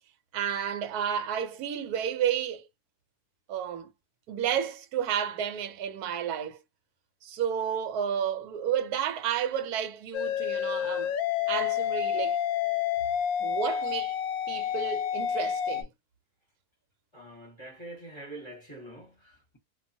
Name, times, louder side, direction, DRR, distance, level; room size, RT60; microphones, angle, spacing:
voice 1, 0.3-2.7 3.5-3.9 4.3-6.6 7.2-11.1 11.5-12.4 13.4-14.2 14.5-15.9, right 9 dB, 75° right, 1.2 m, -31 dB
sound 1, 10.1-15.8, left 9 dB, 70° left, 0.9 m, -29 dB
voice 2, 17.1-19.6, right 1 dB, 20° left, 0.9 m, -45 dB
2.5 x 2.3 x 2.6 m
omnidirectional pair, 1.7 m